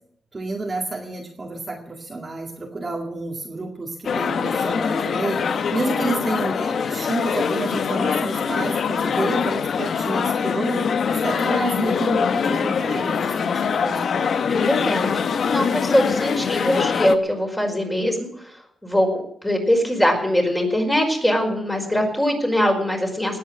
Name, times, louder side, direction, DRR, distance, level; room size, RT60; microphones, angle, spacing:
voice 1, 0.3-10.9 11.2-14.2 15.0-15.1, right 2 dB, 25° right, 0 dB, 2.1 m, -29 dB
sound 1, 4.0-17.2, left 6 dB, 55° left, 1.0 m, -23 dB
voice 2, 14.5-15.1 15.5-18.3 18.8-23.4, equal, 5° left, 2 dB, 5.0 m, -22 dB
19.5 x 8.6 x 7.8 m, 0.70 s
cardioid pair, 130°, 0 cm